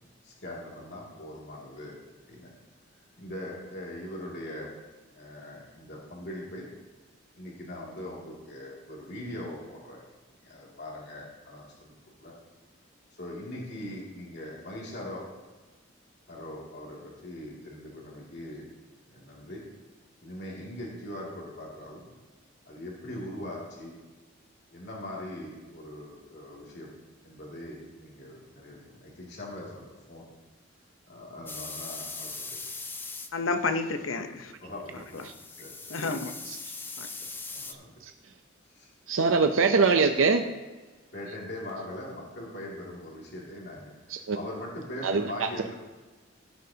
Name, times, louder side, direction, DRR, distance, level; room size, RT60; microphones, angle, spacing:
voice 1, 0.2-2.0 2.3-2.5 3.2-4.7 5.1-6.7 7.3-10.0 10.4-11.9 12.2-12.3 13.2-15.3 16.3-18.7 19.1-19.6 20.2-22.1 22.6-23.9 24.7-26.9 27.2-30.2 31.1-32.6 33.6-33.7 34.6-35.2 35.5-35.7 37.2-37.9 38.7-39.3 41.1-45.7, left 1 dB, 60° left, -4 dB, 2.5 m, -41 dB
sound 1, 31.5-33.3 35.0-37.7, left 3 dB, 10° left, 0.5 m, -40 dB
voice 2, 33.3-34.5 34.9-35.2 35.9-36.3 37.0-37.1, left 3 dB, 90° left, 6 dB, 0.9 m, -30 dB
voice 3, 39.1-40.5 41.3-41.4 44.1-44.4 45.0-45.5, right 4 dB, 85° right, 6 dB, 0.6 m, -23 dB
16.5 x 7.8 x 2.8 m, 1.3 s
head